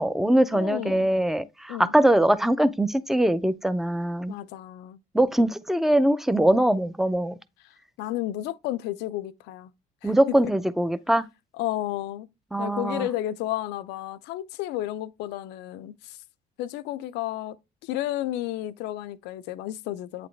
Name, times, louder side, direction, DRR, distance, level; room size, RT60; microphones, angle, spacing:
voice 1, 0.0-4.4 5.1-7.3 10.0-11.2 12.5-13.1, right 1 dB, ahead, 0.4 m, -22 dB
voice 2, 0.5-1.1 1.7-1.9 4.3-5.0 8.0-9.7 10.0-10.5 11.6-12.3 12.6-16.2 16.6-17.6 17.8-20.3, left 14 dB, 90° left, 0.5 m, -32 dB
8.3 x 4.1 x 3.2 m
cardioid pair, 110°, 17 cm